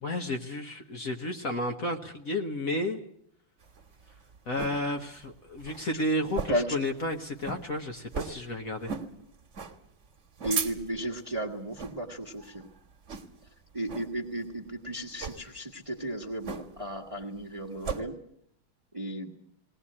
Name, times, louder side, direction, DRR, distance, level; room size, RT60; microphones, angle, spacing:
voice 1, 0.0-3.0 4.5-8.9, left 1 dB, 45° left, 3 dB, 1.5 m, -32 dB
sound 1, 3.6-4.8 5.2-5.3 5.6-5.8 6.3-6.7 7.0-7.1 7.4-7.6 8.1-8.4 8.8-9.1 9.5-9.7 10.2-11.1 11.7-12.0 12.4-12.6 13.1-13.5 13.9-14.1 15.1-15.4 16.4-16.9 17.2-18.0, right 5 dB, 35° right, 1.7 m, -35 dB
voice 2, 6.5-6.8 10.4-12.7 13.7-18.2 18.9-19.3, right 1 dB, 20° right, 0 dB, 1.4 m, -34 dB
20.5 x 18.5 x 8.6 m, 0.71 s
omnidirectional pair, 2.3 m